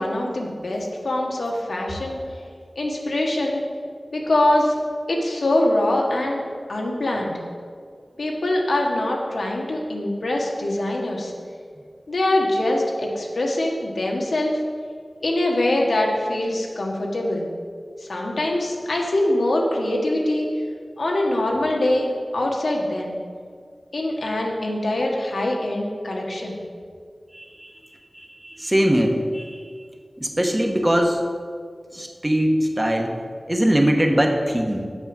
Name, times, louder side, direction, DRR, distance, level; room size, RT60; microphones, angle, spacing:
voice 1, 0.0-2.2 2.7-3.6 4.1-4.7 5.1-6.4 6.7-7.3 8.2-11.3 12.1-14.6 15.2-17.5 18.0-20.5 21.0-23.2 23.9-26.6, left 1 dB, 90° left, -1 dB, 1.5 m, -23 dB
voice 2, 27.3-27.7 28.1-29.6 30.2-31.2 31.9-33.1 33.5-34.9, equal, 20° right, 2 dB, 1.1 m, -21 dB
8.1 x 7.0 x 6.0 m, 2.1 s
wide cardioid pair, 80°, 0 cm